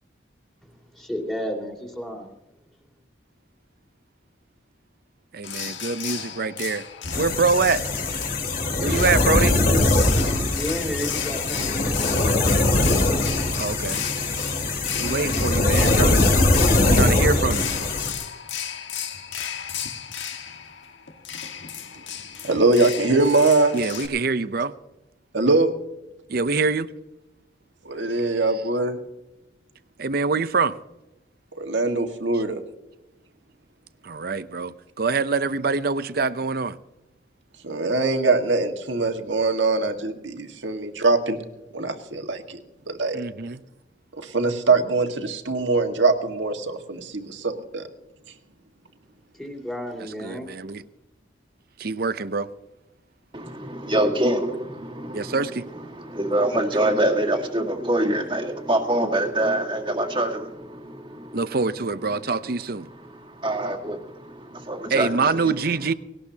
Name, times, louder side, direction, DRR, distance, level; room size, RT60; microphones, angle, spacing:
voice 1, 0.6-2.3 10.5-12.3 49.3-50.5, equal, ahead, 2.6 m, -32 dB
voice 2, 5.3-6.9 7.2-7.8 8.8-9.6 13.6-14.0 15.0-16.2 16.8-17.7 23.7-24.7 26.3-26.9 30.0-30.8 34.0-36.8 43.1-43.6 50.2-50.8 51.8-52.5 55.1-55.7 61.3-62.9 64.9-65.9, right 4 dB, 50° right, 0.7 m, -25 dB
sound 1, 5.4-24.1, left 8 dB, 75° left, 1.6 m, -34 dB
sound 2, 7.1-18.1, left 2 dB, 50° left, 2.6 m, -21 dB
voice 3, 22.4-23.8 25.3-25.7 27.8-29.0 31.6-32.6 37.6-41.4 41.7-42.6 42.9-43.2 44.2-47.8, right 3 dB, 75° right, 1.8 m, -22 dB
voice 4, 53.3-61.6 62.1-62.3 63.0-65.4, right 1 dB, 25° right, 1.8 m, -25 dB
19.5 x 18.0 x 2.9 m
head